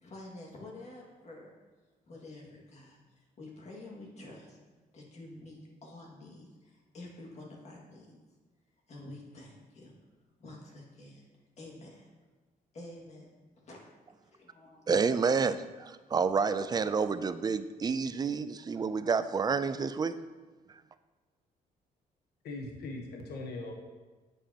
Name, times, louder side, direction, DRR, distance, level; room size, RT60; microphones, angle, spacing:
voice 1, 0.0-1.5 2.1-4.6 4.9-8.2 8.9-9.9 10.4-11.3 11.6-12.1 12.7-13.8 14.5-14.8, left 2 dB, 45° left, -2 dB, 2.0 m, -49 dB
voice 2, 14.9-20.2, right 5 dB, 25° right, 12 dB, 0.4 m, -29 dB
voice 3, 22.4-23.7, left 2 dB, 85° left, 2 dB, 1.1 m, -40 dB
8.5 x 7.3 x 2.9 m, 1.3 s
cardioid pair, 115°, 16 cm